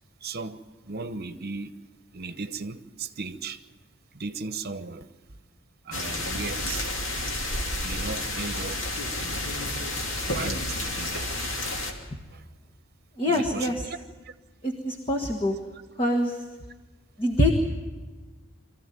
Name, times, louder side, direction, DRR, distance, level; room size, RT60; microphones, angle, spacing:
voice 1, 0.2-1.7 2.1-3.6 4.1-5.1 5.8-6.9 7.8-9.4 10.3-11.3 12.3-12.4 13.3-14.0 14.2-14.3, right 4 dB, 50° right, 1.0 m, -36 dB
sound 1, 5.9-11.9, left 1 dB, 65° left, 2.9 m, -30 dB
voice 2, 13.2-13.7 14.6-15.6 16.0-16.4 17.2-17.5, left 1 dB, 25° left, 1.5 m, -24 dB
23.5 x 15.0 x 9.1 m
head